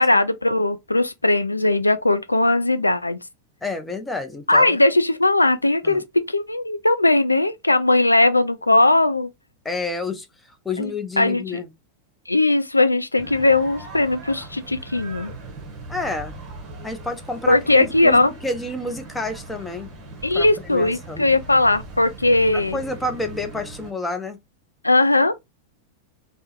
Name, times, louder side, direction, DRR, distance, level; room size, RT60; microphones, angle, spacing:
voice 1, 0.0-3.2 4.5-9.3 10.8-10.9 11.2-11.6 12.3-15.3 17.5-18.3 20.2-22.8 24.8-25.3, left 2 dB, 85° left, 0.3 m, -19 dB
voice 2, 3.6-4.8 5.8-6.0 9.6-10.3 10.6-11.7 15.9-16.4 16.8-19.9 20.3-21.3 22.5-24.4, left 2 dB, 10° left, 0.6 m, -29 dB
sound 1, 13.2-23.9, right 2 dB, 25° right, 1.0 m, -39 dB
3.4 x 2.1 x 2.8 m
figure-of-eight pair, 90°, 0 cm